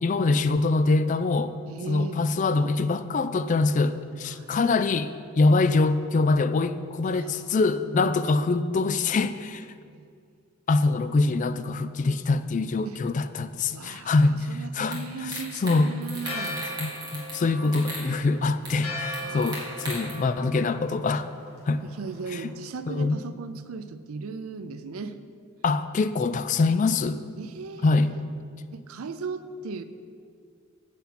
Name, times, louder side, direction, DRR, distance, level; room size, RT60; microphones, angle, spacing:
voice 1, 0.0-1.5 1.9-9.7 10.7-15.9 16.8-21.3 21.7-21.8 22.3-22.4 22.9-23.2 25.6-27.2 27.8-28.1, left 3 dB, 35° left, 12 dB, 0.3 m, -24 dB
voice 2, 1.6-2.3 4.2-4.6 7.0-8.2 9.9-10.0 12.8-13.0 13.7-16.6 19.0-20.0 21.8-25.2 27.4-28.2 28.7-29.8, right 4 dB, 85° right, 12 dB, 0.5 m, -38 dB
sound 1, 14.9-15.0 15.3-15.8 16.0-17.4 17.6-18.0 18.6-18.7 19.1-20.1, right 2 dB, 20° right, 2.1 m, -37 dB
Church bell, 16.2-22.5, left 1 dB, 80° left, 2.6 m, -39 dB
9.5 x 8.3 x 4.3 m, 2.2 s
head